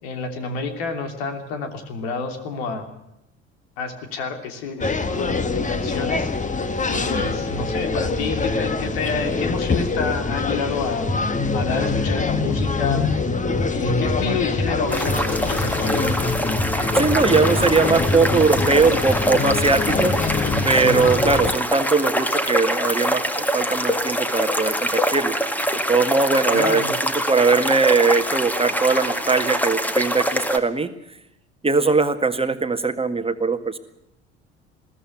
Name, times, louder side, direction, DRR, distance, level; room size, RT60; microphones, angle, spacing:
voice 1, 0.0-2.9 3.8-6.3 6.9-13.0 13.7-16.1 26.5-26.9, left 4 dB, 65° left, 7 dB, 3.0 m, -29 dB
sound 1, 4.8-21.5, left 3 dB, 20° left, 1.7 m, -24 dB
sound 2, 14.9-30.6, equal, 5° left, 2.0 m, -24 dB
voice 2, 16.9-20.2 20.6-25.3 25.9-30.9 31.6-33.8, right 4 dB, 15° right, 8 dB, 1.7 m, -20 dB
21.5 x 15.5 x 9.2 m, 0.82 s
figure-of-eight pair, 55°, 33 cm